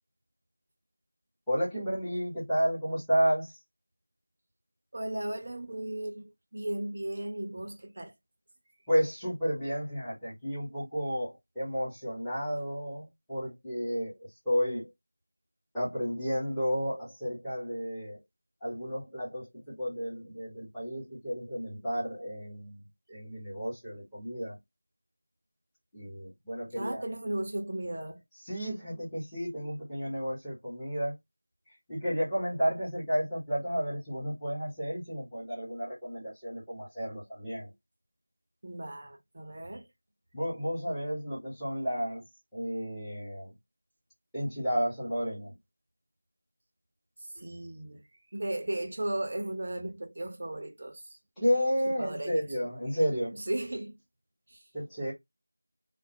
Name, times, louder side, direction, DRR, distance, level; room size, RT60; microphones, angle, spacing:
voice 1, 1.5-3.6 8.9-14.2 14.4-14.9 15.7-18.2 18.6-22.8 23.1-24.6 25.9-27.0 28.4-31.1 31.9-37.7 40.3-42.2 42.5-43.5 44.3-45.5 51.4-53.4 54.7-55.1, equal, ahead, 0.8 m, -32 dB
voice 2, 4.9-8.1 26.8-28.2 38.6-39.9 47.3-48.0 48.3-51.5 52.0-52.5 53.4-54.0 54.5-54.6, right 1 dB, 30° right, 0.6 m, -36 dB
2.4 x 2.0 x 2.6 m
figure-of-eight pair, 175°, 0 cm